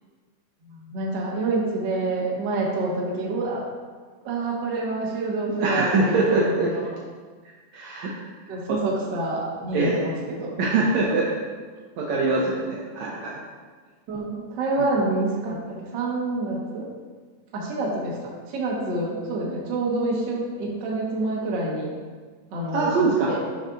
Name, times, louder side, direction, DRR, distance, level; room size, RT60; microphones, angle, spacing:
voice 1, 0.7-3.6 4.2-6.9 8.5-10.5 14.1-16.9 17.5-21.9 22.5-23.4, right 2 dB, 55° right, -3 dB, 1.3 m, -27 dB
voice 2, 5.6-6.7 7.7-8.1 8.7-8.8 9.7-10.0 10.6-11.3 12.0-13.4 14.8-14.9 22.7-23.3, right 3 dB, 75° right, -4 dB, 1.8 m, -23 dB
11.5 x 5.3 x 2.5 m, 1.5 s
omnidirectional pair, 3.7 m